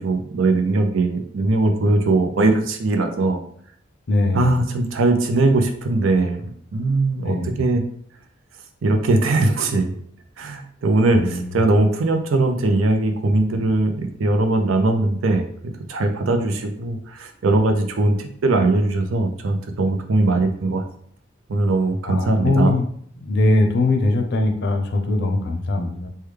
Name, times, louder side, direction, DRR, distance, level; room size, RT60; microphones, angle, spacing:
voice 1, 0.0-3.4 4.3-7.8 8.8-10.0 10.4-15.4 15.9-20.8 21.5-22.7, right 2 dB, 90° right, 5 dB, 0.5 m, -20 dB
voice 2, 4.1-4.5 7.2-7.5 11.1-11.6 22.1-22.8 23.2-26.1, left 2 dB, 60° left, 5 dB, 0.5 m, -21 dB
3.3 x 2.2 x 3.2 m, 0.63 s
head